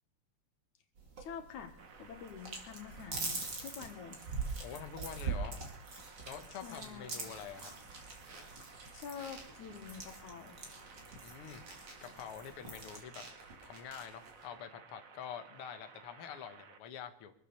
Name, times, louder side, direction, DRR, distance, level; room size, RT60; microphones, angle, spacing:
sound 1, 1.0-13.0, right 4 dB, 40° right, 2.8 m, -43 dB
voice 1, 1.2-4.2 6.6-7.2 8.9-10.6, left 7 dB, 85° left, 6 dB, 3.0 m, -47 dB
sound 2, 1.8-16.8, right 5 dB, 60° right, 0.8 m, -57 dB
voice 2, 4.6-5.6 6.3-7.7 11.2-11.6 12.0-13.2 13.6-17.3, left 8 dB, 60° left, 7 dB, 1.9 m, -46 dB
sound 3, 7.3-14.5, right 2 dB, 75° right, 4.9 m, -56 dB
24.5 x 8.3 x 6.9 m, 0.69 s
omnidirectional pair, 3.3 m